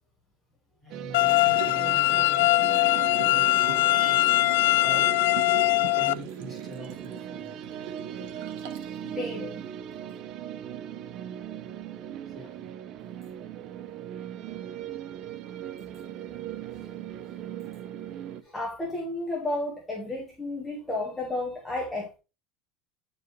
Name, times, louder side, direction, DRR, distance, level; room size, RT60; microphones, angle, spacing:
voice 1, 0.8-2.4 3.2-3.5 4.1-4.2 4.8-5.1 5.9-7.6 12.3-12.6, right 1 dB, 15° right, 3.6 m, -42 dB
sound 1, 0.9-18.4, right 10 dB, 35° right, 0.5 m, -39 dB
sound 2, 1.1-6.1, left 20 dB, 80° left, 0.4 m, -22 dB
Liquid, 1.3-9.0 9.4-9.5, right 9 dB, 80° right, 1.2 m, -41 dB
voice 2, 3.2-4.4 4.6-4.8 8.8-9.6 16.7-16.8 18.4-22.2, left 2 dB, 5° left, 1.3 m, -34 dB
9.7 x 4.6 x 3.1 m
cardioid pair, 170°, 0 cm